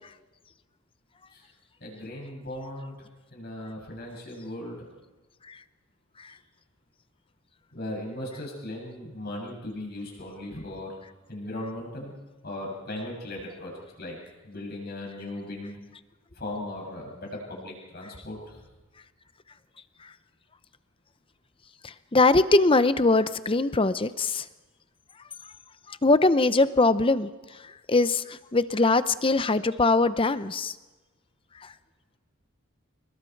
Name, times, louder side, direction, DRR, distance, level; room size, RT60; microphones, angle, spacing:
voice 1, 1.8-4.9 7.7-10.9 11.3-12.1 12.4-13.7 14.0-14.2 14.4-15.8 16.3-18.6, left 1 dB, 50° left, -1 dB, 7.4 m, -37 dB
voice 2, 21.8-24.5 25.9-27.3 27.6-30.7 31.6-31.7, left 3 dB, 25° left, 13 dB, 0.7 m, -22 dB
28.0 x 22.0 x 4.7 m, 1.2 s
head